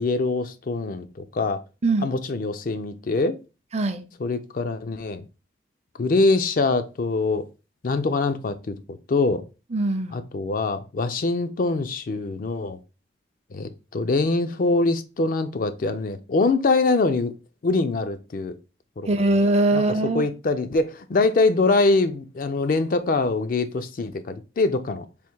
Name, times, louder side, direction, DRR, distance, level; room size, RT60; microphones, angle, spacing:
voice 1, 0.0-1.6 2.0-3.4 4.2-5.2 6.0-7.5 7.8-9.5 10.1-12.8 13.5-17.3 17.6-18.6 19.0-19.1 19.7-19.8 20.1-25.1, left 3 dB, 50° left, 0.4 m, -24 dB
voice 2, 3.7-4.0 9.7-10.2 19.1-20.3, right 2 dB, 35° right, 0.5 m, -22 dB
3.5 x 2.6 x 4.5 m
head